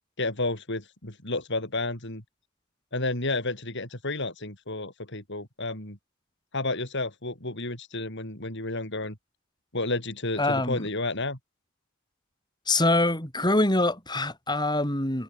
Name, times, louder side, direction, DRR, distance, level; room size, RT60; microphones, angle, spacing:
voice 1, 0.2-2.2 2.9-6.0 6.5-9.2 9.7-11.4, left 2 dB, 55° left, 6.0 m, -31 dB
voice 2, 10.4-10.8 12.7-15.2, left 2 dB, 20° left, 7.5 m, -24 dB
head